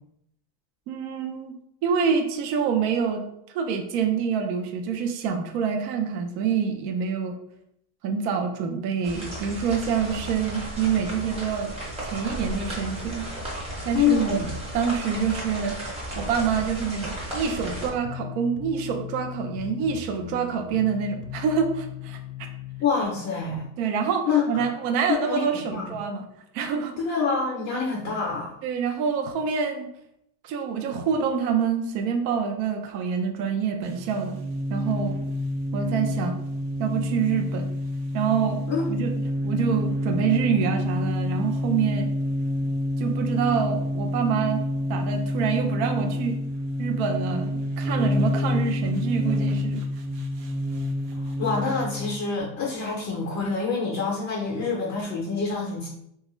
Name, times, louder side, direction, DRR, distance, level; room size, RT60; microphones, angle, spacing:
voice 1, 0.9-1.5 1.8-3.2 3.5-7.3 8.0-11.7 12.0-13.3 13.9-22.2 23.8-26.2 26.5-26.9 28.6-29.9 30.4-34.4 34.7-35.2 35.7-36.4 36.8-37.7 38.1-38.6 38.9-39.1 39.4-42.1 43.0-44.6 44.9-46.4 46.8-49.8, right 6 dB, 50° right, 4 dB, 0.5 m, -26 dB
sound 1, 9.0-17.9, right 1 dB, 10° right, 0.6 m, -34 dB
voice 2, 13.9-14.5 22.8-23.7 24.3-24.4 25.1-25.9 27.0-28.6 38.7-38.9 51.1-55.9, left 5 dB, 35° left, -2 dB, 0.6 m, -26 dB
sound 2, 17.5-22.9, left 13 dB, 80° left, 0.6 m, -38 dB
sound 3, 33.8-52.1, left 1 dB, 85° right, 0.8 m, -28 dB
3.1 x 2.3 x 3.0 m, 0.76 s
supercardioid pair, 145°, 49 cm